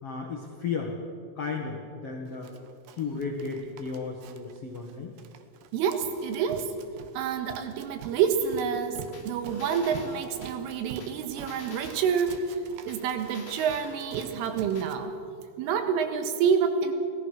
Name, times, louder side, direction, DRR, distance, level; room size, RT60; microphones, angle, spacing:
voice 1, 0.0-1.0 1.3-2.5 2.9-5.2, left 5 dB, 75° left, 1 dB, 1.3 m, -34 dB
Run, 2.4-14.9, right 7 dB, 70° right, 2.6 m, -47 dB
voice 2, 5.7-6.7 7.2-9.0 9.3-12.4 12.9-15.1 15.6-16.9, right 7 dB, 90° right, 6 dB, 4.1 m, -28 dB
sound 1, 9.1-10.5 11.0-12.4 12.9-14.3 14.7-14.9, left 2 dB, 25° left, 1.3 m, -46 dB
Keyboard (musical), 9.6-12.3, right 3 dB, 55° right, 7.1 m, -49 dB
26.0 x 17.5 x 6.4 m, 2.4 s
omnidirectional pair, 5.6 m